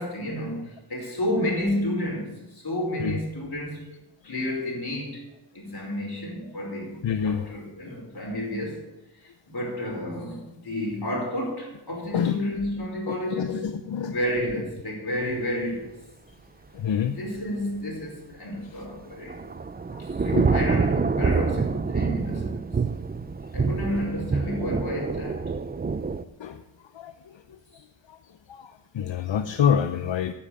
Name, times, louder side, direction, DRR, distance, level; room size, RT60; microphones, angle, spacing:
voice 1, 0.0-3.9 4.2-5.2 5.5-8.9 9.2-13.6 14.1-15.9 17.0-19.4 20.0-22.7 23.5-25.5 27.7-27.8, left 1 dB, 55° left, -2 dB, 5.0 m, -31 dB
voice 2, 7.0-7.4 12.1-12.4 13.1-14.1 16.7-17.2 20.3-20.5 26.4-26.6 27.0-27.1 28.5-28.7 28.9-30.3, left 8 dB, 85° left, 9 dB, 0.7 m, -26 dB
Thunder / Rain, 18.9-26.2, right 4 dB, 25° right, 0.4 m, -26 dB
9.9 x 8.9 x 7.0 m, 0.96 s
wide cardioid pair, 85°, 44 cm